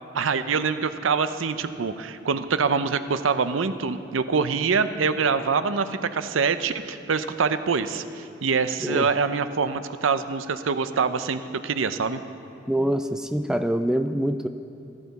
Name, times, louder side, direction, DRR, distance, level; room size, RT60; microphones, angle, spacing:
voice 1, 0.1-12.2, right 5 dB, 90° right, 11 dB, 0.6 m, -25 dB
voice 2, 12.7-14.5, right 1 dB, 5° right, 8 dB, 0.3 m, -25 dB
13.5 x 13.0 x 4.2 m, 2.9 s
head